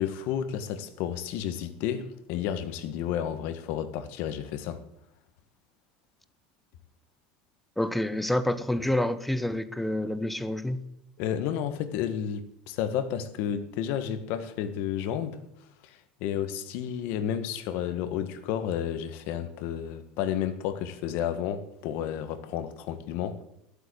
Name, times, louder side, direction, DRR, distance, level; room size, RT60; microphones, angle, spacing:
voice 1, 0.0-4.8 11.2-15.4 15.8-23.4, left 9 dB, 65° left, 1.6 m, -31 dB
voice 2, 7.8-10.8, left 1 dB, 5° left, 1.0 m, -28 dB
12.0 x 8.3 x 8.5 m
supercardioid pair, 105°, 4 cm